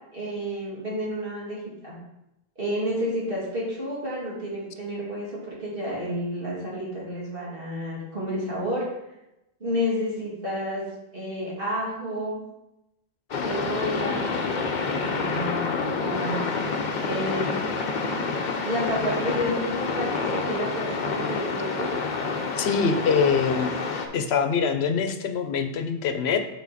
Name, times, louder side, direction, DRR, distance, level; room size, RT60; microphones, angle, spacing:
voice 1, 0.1-2.0 2.6-8.8 9.6-10.8 11.1-12.4 13.4-14.4 14.8-15.7 16.0-16.5 17.0-17.6 18.6-21.9, equal, 60° right, -6 dB, 2.4 m, -30 dB
sound 1, 13.3-24.1, left 4 dB, 50° left, 0.7 m, -28 dB
voice 2, 22.6-23.7 24.1-26.4, left 6 dB, 80° left, 8 dB, 0.9 m, -24 dB
7.2 x 4.0 x 4.1 m, 0.91 s
omnidirectional pair, 1.1 m